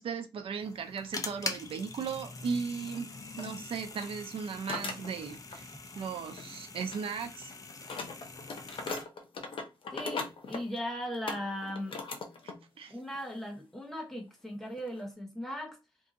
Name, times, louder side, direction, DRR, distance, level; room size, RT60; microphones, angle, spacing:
voice 1, 0.0-3.1 3.4-7.5 12.8-12.9, right 6 dB, 90° right, 0.6 m, -37 dB
sound 1, 0.6-9.0, left 3 dB, 40° left, 0.6 m, -43 dB
sound 2, 2.9-3.0 3.4-3.5 3.9-4.2 4.7-5.6 5.9-6.6 6.9-12.6 13.0-13.2 13.9-14.0 14.7-15.0, left 3 dB, 70° left, 0.8 m, -40 dB
voice 2, 9.9-12.0 12.9-15.8, equal, 5° left, 1.0 m, -38 dB
2.7 x 2.6 x 3.7 m
wide cardioid pair, 100°, 9 cm